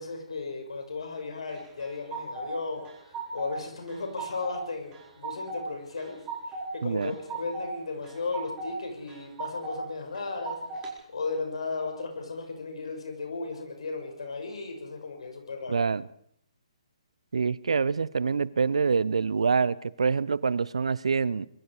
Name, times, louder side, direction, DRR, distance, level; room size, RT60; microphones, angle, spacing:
voice 1, 0.0-15.8, left 4 dB, 65° left, 4 dB, 6.0 m, -36 dB
sound 1, 1.5-2.5 2.8-3.6 3.9-4.6 4.9-5.6 6.0-6.7 7.0-7.7 8.0-8.7 9.1-9.8 10.1-10.9, right 4 dB, 20° right, 4.5 m, -37 dB
voice 2, 15.7-16.0 17.3-21.5, right 5 dB, 65° right, 21 dB, 0.7 m, -26 dB
25.0 x 22.0 x 4.9 m, 0.68 s
figure-of-eight pair, 135°, 3 cm